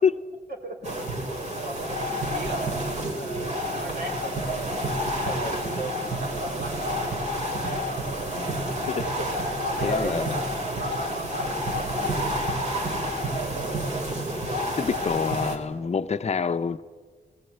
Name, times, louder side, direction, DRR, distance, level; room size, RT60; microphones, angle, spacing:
voice 1, 0.6-1.0 1.3-7.1 7.6-8.0 9.0-12.1, right 2 dB, 70° right, 2 dB, 3.1 m, -36 dB
sound 1, 0.8-15.6, equal, 40° right, 2.8 m, -29 dB
voice 2, 9.8-10.4 14.8-16.8, left 5 dB, 40° left, 10 dB, 0.7 m, -26 dB
18.5 x 18.0 x 7.9 m, 1.5 s
wide cardioid pair, 165°, 17 cm